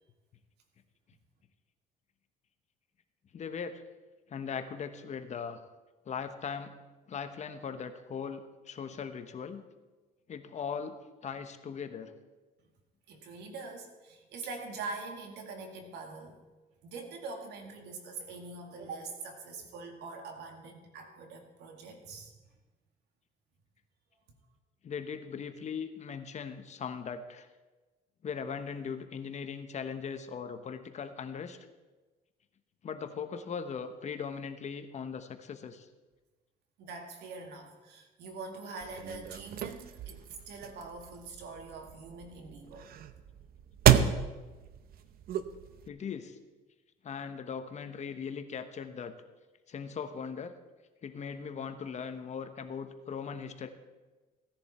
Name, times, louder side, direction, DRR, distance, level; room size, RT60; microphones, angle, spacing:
voice 1, 3.3-3.8 4.3-5.6 6.1-6.8 7.1-9.6 10.3-12.1 24.8-27.5 28.2-31.6 32.8-35.9 45.8-46.4 47.0-49.1 49.7-50.5 51.0-53.7, left 6 dB, 45° left, 8 dB, 1.1 m, -39 dB
voice 2, 13.1-16.4 16.8-22.3 36.8-42.9, right 3 dB, 80° right, 4 dB, 2.2 m, -44 dB
sound 1, 38.8-45.9, right 10 dB, 60° right, 0.7 m, -31 dB
16.0 x 10.5 x 4.4 m, 1.2 s
cardioid pair, 110°, 17 cm